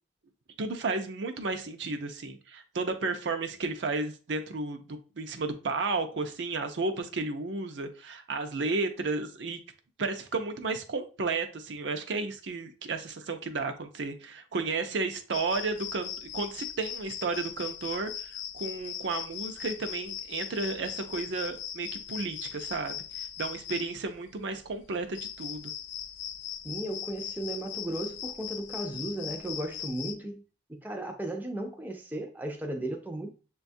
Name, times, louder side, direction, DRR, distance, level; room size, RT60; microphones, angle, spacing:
voice 1, 0.6-9.6 10.0-25.7, right 3 dB, 70° right, 0.5 m, -33 dB
sound 1, 15.3-30.1, left 9 dB, 80° left, 0.4 m, -39 dB
voice 2, 26.6-30.4 30.7-33.3, right 1 dB, 10° right, 0.5 m, -35 dB
6.7 x 2.3 x 2.6 m
head